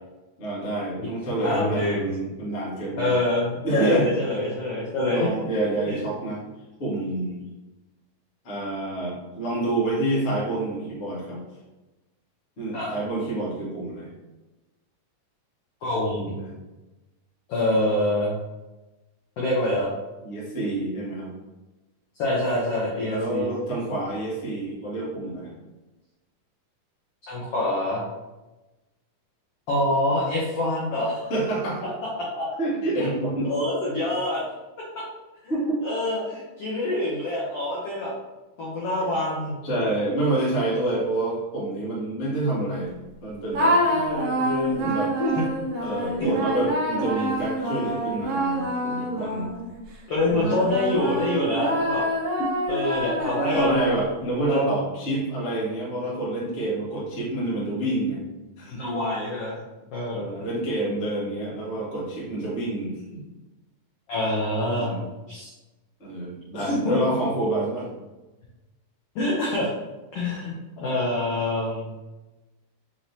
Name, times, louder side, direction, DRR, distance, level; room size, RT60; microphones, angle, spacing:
voice 1, 0.4-3.1 3.6-4.1 5.1-6.4 6.8-7.4 8.4-11.4 12.6-14.1 16.4-16.5 20.2-21.3 23.0-25.6 31.3-31.8 32.6-33.5 35.5-35.8 39.6-42.9 43.2-43.8 44.8-45.1 45.8-49.5 50.2-50.7 52.4-52.5 53.5-58.2 58.6-58.8 60.1-63.2 64.7-65.1 66.0-67.9, right 2 dB, 45° left, -7 dB, 0.9 m, -28 dB
voice 2, 1.4-2.1 3.0-5.3 5.9-6.0 12.7-12.9 15.8-16.3 17.5-18.3 19.4-19.9 22.1-23.5 27.3-28.0 29.7-31.3 32.4-32.5 33.0-33.1 33.4-34.4 35.8-38.1 38.6-39.5 43.9-44.9 45.2-45.4 46.2-46.3 50.1-52.0 52.7-53.7 54.5-54.7 58.7-59.6 59.9-60.5 64.1-64.9 65.3-65.5 66.6-67.0 69.1-69.7 70.1-71.9, left 1 dB, 80° left, -5 dB, 1.3 m, -25 dB
sound 1, 43.5-49.8 50.4-54.3, right 1 dB, 80° right, 1.3 m, -27 dB
5.6 x 3.1 x 2.7 m, 1.1 s
omnidirectional pair, 3.8 m